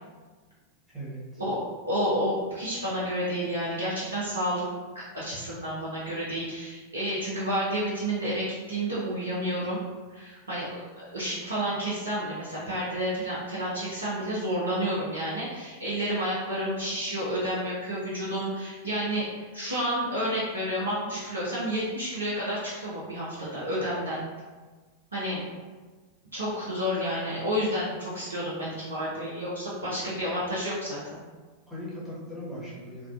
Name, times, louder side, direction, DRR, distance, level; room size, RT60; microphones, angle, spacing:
voice 1, 0.9-1.4 29.8-30.2 31.7-33.1, equal, ahead, -9 dB, 1.1 m, -39 dB
voice 2, 1.9-4.6 4.9-9.8 10.1-19.3 19.5-24.2 25.1-25.4 26.3-31.2, equal, 75° right, -7 dB, 0.6 m, -30 dB
3.6 x 2.2 x 2.3 m, 1.4 s
figure-of-eight pair, 90°, 0 cm